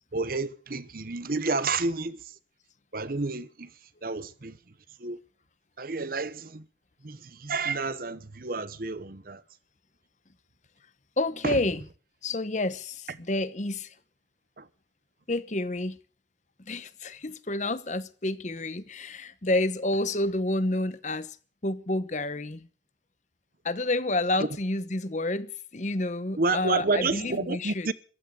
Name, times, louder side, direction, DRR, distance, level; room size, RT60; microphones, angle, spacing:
voice 1, 0.1-2.2 2.9-3.7 4.0-4.6 5.0-5.2 5.8-6.6 7.0-9.4 11.4-11.6 14.6-14.7 26.4-27.9, right 3 dB, 50° right, 1.0 m, -30 dB
voice 2, 11.2-11.8 12.2-13.9 15.3-16.0 16.6-21.4 21.6-22.7 23.6-27.9, left 2 dB, 40° left, 1.0 m, -29 dB
15.0 x 12.0 x 7.7 m
head